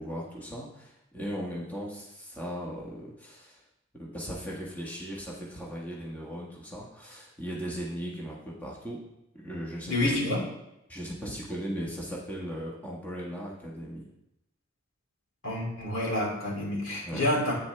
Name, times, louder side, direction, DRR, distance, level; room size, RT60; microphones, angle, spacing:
voice 1, 0.0-3.6 3.9-9.0 9.3-10.1 10.9-14.1 17.0-17.2, equal, 10° left, -4 dB, 1.2 m, -38 dB
voice 2, 9.9-10.5 15.4-17.5, left 1 dB, 80° left, -3 dB, 2.9 m, -28 dB
8.6 x 7.0 x 3.4 m, 0.86 s
head